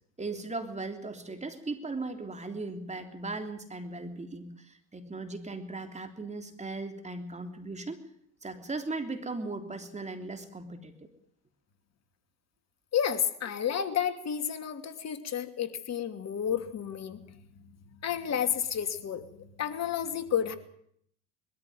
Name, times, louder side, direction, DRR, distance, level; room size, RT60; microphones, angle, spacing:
voice 1, 0.2-8.0 8.4-10.9, right 3 dB, 20° right, 6 dB, 3.4 m, -38 dB
voice 2, 12.9-17.6 17.9-20.6, left 8 dB, 45° left, 8 dB, 2.8 m, -31 dB
21.5 x 14.0 x 9.5 m, 0.67 s
supercardioid pair, 80°, 36 cm